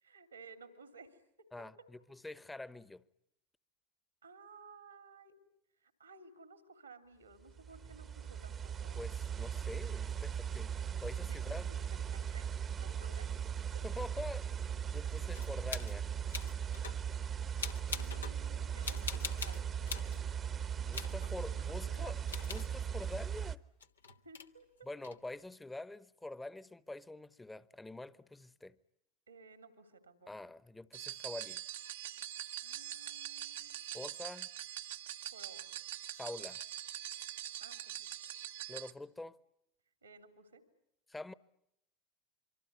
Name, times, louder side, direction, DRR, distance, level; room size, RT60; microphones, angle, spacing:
voice 1, 0.0-1.2 4.2-5.3 5.8-9.0 11.3-11.4 12.1-12.5 12.8-13.3 13.7-13.8 17.9-20.2 21.0-22.1 24.1-24.9 29.3-30.4 32.6-33.7 35.2-35.7 37.6-38.1 40.0-40.6, right 4 dB, 85° right, 3.0 m, -56 dB
voice 2, 1.5-3.1 9.0-10.8 11.0-11.7 13.8-14.5 14.9-16.1 20.8-23.6 24.8-28.8 30.3-31.6 33.9-34.5 36.2-36.6 38.7-39.4 41.1-41.3, left 2 dB, 10° left, 1.0 m, -46 dB
sound 1, 7.5-23.5, right 8 dB, 30° right, 1.0 m, -38 dB
sound 2, 15.3-16.0 16.3-17.0 17.6-18.4 18.8-20.2 20.9-21.3 22.3-22.7 23.8-24.5 25.0-25.2, left 6 dB, 80° left, 1.2 m, -43 dB
sound 3, 30.9-38.9, right 12 dB, 70° right, 1.1 m, -44 dB
25.0 x 24.5 x 9.6 m
figure-of-eight pair, 75°, 0 cm